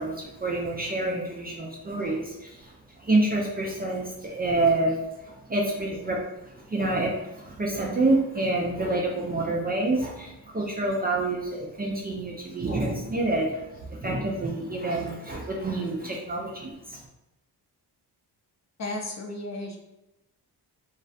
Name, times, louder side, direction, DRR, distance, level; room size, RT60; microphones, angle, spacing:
voice 1, 0.0-17.0, right 2 dB, 25° right, -2 dB, 0.4 m, -28 dB
voice 2, 18.8-19.8, left 1 dB, 40° left, 1 dB, 0.5 m, -34 dB
2.3 x 2.1 x 2.6 m, 0.93 s
cardioid pair, 70°, 41 cm